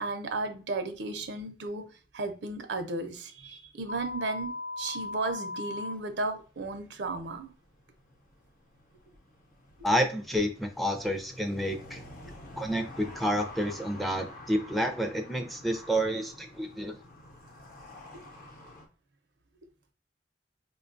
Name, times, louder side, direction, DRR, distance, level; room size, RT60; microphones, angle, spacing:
voice 1, 0.0-1.8 2.1-7.5, right 2 dB, 80° right, 7 dB, 0.6 m, -34 dB
sound 1, 3.9-5.9, left 2 dB, 85° left, 0.7 m, -37 dB
sound 2, 5.9-18.9, left 1 dB, 50° left, 0.7 m, -49 dB
voice 2, 9.8-12.0 12.6-16.9, equal, ahead, 3 dB, 0.4 m, -29 dB
5.0 x 2.2 x 2.5 m, 0.36 s
head